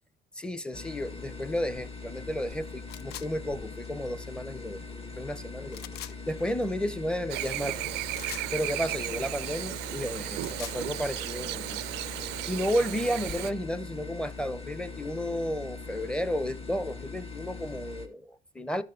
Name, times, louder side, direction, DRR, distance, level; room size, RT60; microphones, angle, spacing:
voice 1, 0.4-4.8 5.2-5.9 6.3-7.8 8.5-11.8 12.5-18.8, equal, 5° left, 0.8 m, -32 dB
sound 1, 0.7-18.1, left 4 dB, 35° left, 1.8 m, -41 dB
sound 2, 2.9-3.3 5.7-6.2 8.1-8.5 10.2-10.8, left 13 dB, 75° left, 0.5 m, -42 dB
Chirp tweet / Buzz, 7.3-13.5, right 18 dB, 85° right, 0.4 m, -35 dB
13.0 x 6.5 x 2.5 m
cardioid pair, 110°, 17 cm